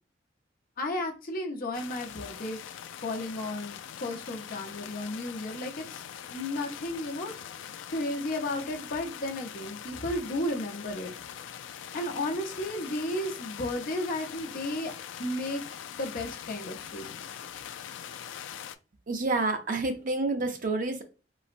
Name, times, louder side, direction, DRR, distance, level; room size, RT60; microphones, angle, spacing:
voice 1, 0.8-6.0 6.3-7.3 7.9-11.1 11.9-14.9 15.2-17.4, left 1 dB, 50° left, 2 dB, 0.7 m, -34 dB
sound 1, 1.7-18.8, left 9 dB, 80° left, 0.3 m, -43 dB
voice 2, 19.1-21.0, right 3 dB, 45° right, 5 dB, 0.6 m, -28 dB
3.9 x 2.1 x 2.5 m, 0.32 s
head